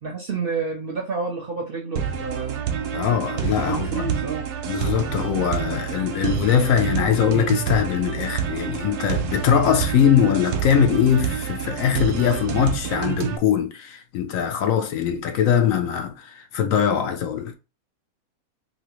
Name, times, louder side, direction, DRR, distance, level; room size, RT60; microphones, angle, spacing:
voice 1, 0.0-2.6 3.6-4.5, right 5 dB, 55° right, 0.6 m, -29 dB
sound 1, 2.0-13.4, right 8 dB, 90° right, 1.1 m, -28 dB
voice 2, 2.9-4.1 4.7-17.5, left 8 dB, 70° left, 0.9 m, -21 dB
2.8 x 2.8 x 3.0 m
omnidirectional pair, 1.5 m